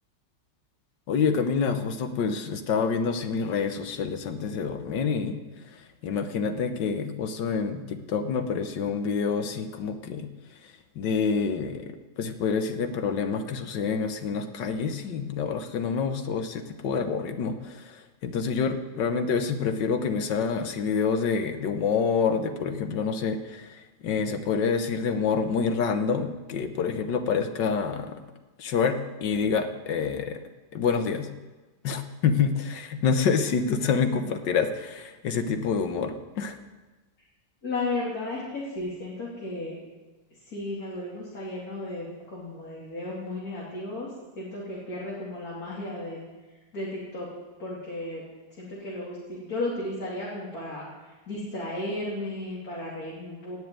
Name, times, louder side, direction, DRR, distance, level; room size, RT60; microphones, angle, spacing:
voice 1, 1.1-5.4 5.7-10.3 11.0-28.2 28.6-30.4 30.7-31.3 31.8-36.6, left 5 dB, 85° left, 8 dB, 1.7 m, -27 dB
voice 2, 37.6-39.7 40.5-44.1 44.4-46.2 46.7-47.3 47.6-48.2 48.6-50.9 51.3-53.6, left 2 dB, 55° left, -6 dB, 3.4 m, -34 dB
18.0 x 6.7 x 8.9 m, 1.2 s
omnidirectional pair, 1.9 m